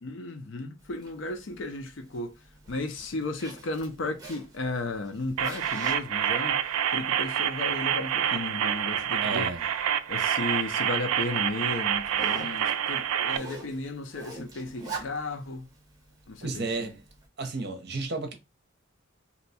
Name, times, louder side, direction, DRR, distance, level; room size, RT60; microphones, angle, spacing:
voice 1, 0.0-2.4 2.7-9.5 10.1-15.7 16.3-16.9, left 2 dB, 60° left, 0.5 m, -34 dB
Zipper (clothing), 0.8-17.3, right 3 dB, 15° right, 1.1 m, -47 dB
sound 1, 5.4-13.4, right 9 dB, 80° right, 0.3 m, -27 dB
voice 2, 9.2-9.6 16.4-17.0 17.4-18.3, right 3 dB, 50° right, 0.7 m, -32 dB
2.8 x 2.2 x 4.1 m
head